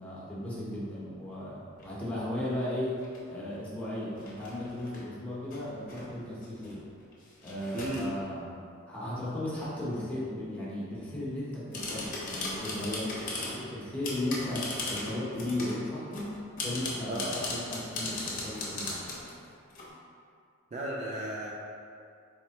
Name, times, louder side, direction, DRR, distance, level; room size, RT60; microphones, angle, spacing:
voice 1, 0.0-2.9 3.3-6.8 7.4-8.5 8.9-14.6 14.9-16.3 16.6-19.0, left 1 dB, 5° left, -9 dB, 0.9 m, -36 dB
sound 1, 1.8-2.0 2.9-3.2 4.2-5.0 5.5-6.1 6.4-8.1 11.5-13.6 14.0-15.8 16.1-19.9, left 2 dB, 40° left, 0.8 m, -37 dB
voice 2, 7.7-8.1 17.1-17.4 20.7-21.5, right 1 dB, 35° right, -3 dB, 0.3 m, -34 dB
4.2 x 3.2 x 2.8 m, 2.4 s
head